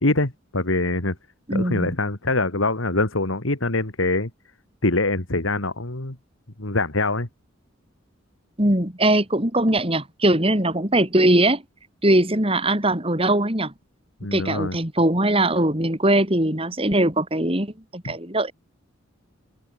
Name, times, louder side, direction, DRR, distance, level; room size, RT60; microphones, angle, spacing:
voice 1, 0.0-1.2 1.5-4.3 4.8-6.2 6.6-7.3 14.2-14.8 18.0-18.1, left 2 dB, 85° left, 2.5 m, -24 dB
voice 2, 1.5-1.9 8.6-11.6 12.0-13.7 14.3-18.5, right 1 dB, 30° right, 4.0 m, -21 dB
open air
head